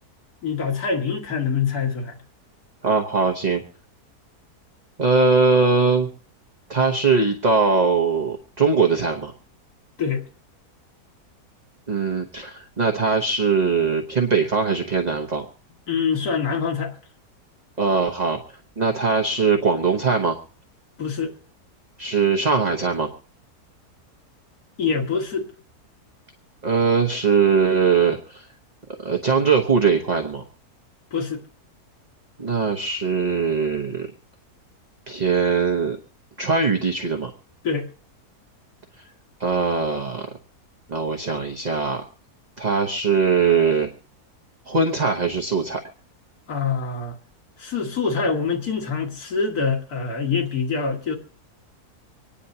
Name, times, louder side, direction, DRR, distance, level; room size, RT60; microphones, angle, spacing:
voice 1, 0.4-2.2 10.0-10.2 15.9-16.9 21.0-21.3 24.8-25.5 31.1-31.4 37.6-37.9 46.5-47.2 47.6-51.2, left 5 dB, 70° left, 2.3 m, -25 dB
voice 2, 2.8-3.6 5.0-6.1 6.7-9.3 11.9-15.4 17.8-18.4 18.8-20.4 22.0-23.1 26.6-28.5 29.0-30.4 32.4-34.1 35.1-36.0 36.4-37.3 39.4-40.3 40.9-42.0 42.6-43.9 44.7-45.8, right 5 dB, 30° right, 1.0 m, -21 dB
25.5 x 10.0 x 2.8 m
omnidirectional pair, 1.6 m